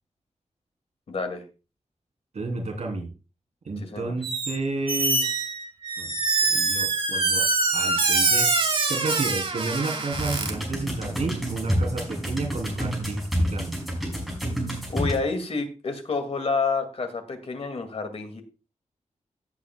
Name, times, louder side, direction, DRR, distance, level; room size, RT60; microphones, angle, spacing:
voice 1, 1.1-1.4 3.8-4.1 14.9-18.4, left 4 dB, 55° left, 6 dB, 2.3 m, -29 dB
voice 2, 2.3-3.1 3.6-5.2 6.0-6.1 6.5-7.4 7.7-8.5 8.9-13.7, right 3 dB, 65° right, 1 dB, 3.2 m, -31 dB
Squeak, 4.2-4.6 4.9-10.5, right 3 dB, 45° right, 2.1 m, -24 dB
sound 1, 10.1-15.2, equal, ahead, 5.5 m, -29 dB
17.0 x 8.4 x 2.3 m, 0.30 s
wide cardioid pair, 155°, 13 cm